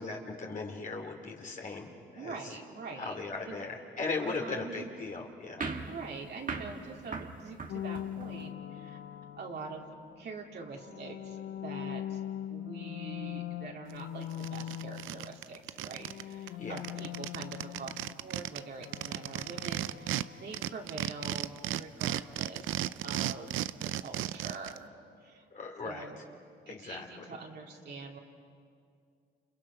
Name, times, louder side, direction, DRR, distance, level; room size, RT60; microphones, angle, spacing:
voice 1, 0.0-2.6 3.0-5.7 16.6-16.8 25.5-26.1 26.7-27.4, left 3 dB, 40° left, 1 dB, 2.9 m, -38 dB
voice 2, 2.2-3.1 3.5-3.6 4.2-4.9 5.6-9.0 9.4-9.9 10.2-11.4 11.6-12.2 12.5-24.9 25.2-25.5 25.8-26.2 26.7-28.2, right 4 dB, 60° right, -1 dB, 3.5 m, -44 dB
sound 1, 5.6-8.5, right 4 dB, 45° right, 2.0 m, -40 dB
sound 2, 7.7-10.1 10.7-15.6 15.9-20.8, left 11 dB, 80° left, 0.8 m, -42 dB
sound 3, 13.9-14.0 14.3-16.2 16.5-16.6 16.8-20.2 20.5-24.8, right 13 dB, 85° right, 0.6 m, -35 dB
30.0 x 29.0 x 5.7 m, 2.3 s
cardioid pair, 90°, 20 cm